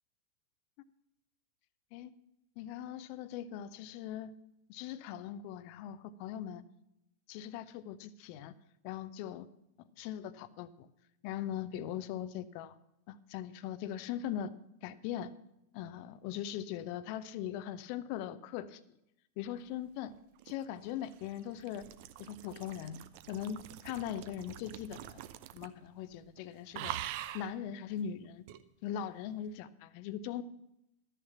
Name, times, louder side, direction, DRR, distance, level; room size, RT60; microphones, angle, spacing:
voice 1, 2.6-4.3 4.7-6.6 7.3-8.5 8.8-9.5 10.0-10.9 11.2-12.7 13.1-14.5 14.8-15.3 15.7-18.8 19.4-20.1 20.5-21.9 22.2-23.0 23.3-25.2 25.5-27.0 27.3-28.4 28.8-30.4, left 10 dB, 45° left, 15 dB, 0.6 m, -40 dB
sound 1, 20.1-25.9 26.1-26.4 26.7-27.5 28.5-28.6, right 13 dB, 45° right, 0.7 m, -45 dB
13.0 x 6.7 x 7.3 m, 0.84 s
figure-of-eight pair, 90°, 0 cm